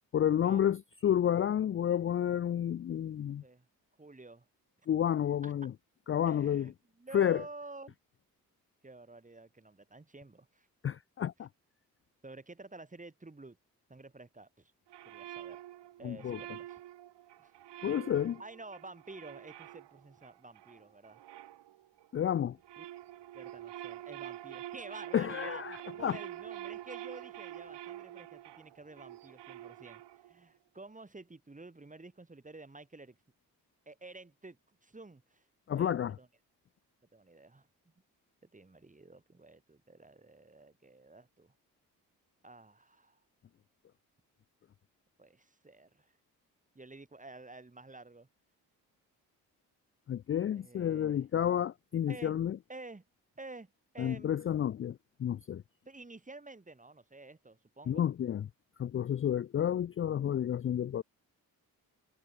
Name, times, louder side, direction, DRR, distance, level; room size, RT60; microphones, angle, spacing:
voice 1, 0.1-3.4 4.9-5.7 6.1-6.7 7.1-7.4 10.8-11.5 16.0-16.4 17.8-18.4 22.1-22.6 25.1-26.2 35.7-36.2 50.1-52.6 54.0-55.6 57.9-58.5 58.8-61.0, left 10 dB, 30° left, 0.4 m, -30 dB
voice 2, 3.3-3.7 4.0-4.5 5.4-5.7 6.3-8.0 8.8-10.7 12.2-13.6 13.9-14.7 15.1-15.6 16.0-16.8 17.4-17.5 18.4-21.2 22.8-22.9 23.3-33.2 33.9-35.4 35.8-36.3 37.1-37.7 38.4-41.5 42.4-43.2 45.2-46.1 46.8-48.3 50.5-51.3 52.1-52.4 52.7-53.0 53.4-54.3 55.8-58.1, right 2 dB, 20° right, 2.0 m, -50 dB
sound 1, 14.9-22.1 22.5-30.4, right 13 dB, 75° right, 2.0 m, -47 dB
supercardioid pair, 45°, 42 cm